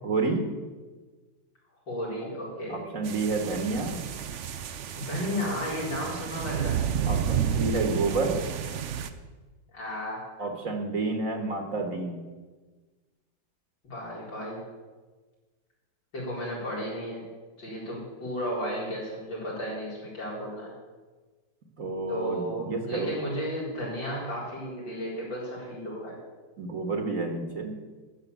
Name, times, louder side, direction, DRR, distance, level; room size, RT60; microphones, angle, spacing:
voice 1, 0.0-0.4 2.7-4.0 6.1-6.2 7.1-8.4 10.4-12.2 21.8-23.1 26.6-27.8, right 3 dB, 45° right, 3 dB, 1.8 m, -29 dB
voice 2, 1.9-2.8 5.0-6.8 9.7-10.2 13.8-14.6 16.1-17.3 17.6-20.7 22.1-26.2, equal, 80° left, -5 dB, 5.3 m, -33 dB
sound 1, 3.0-9.1, right 8 dB, 60° right, 0.7 m, -31 dB
13.5 x 7.1 x 8.2 m, 1.3 s
omnidirectional pair, 2.0 m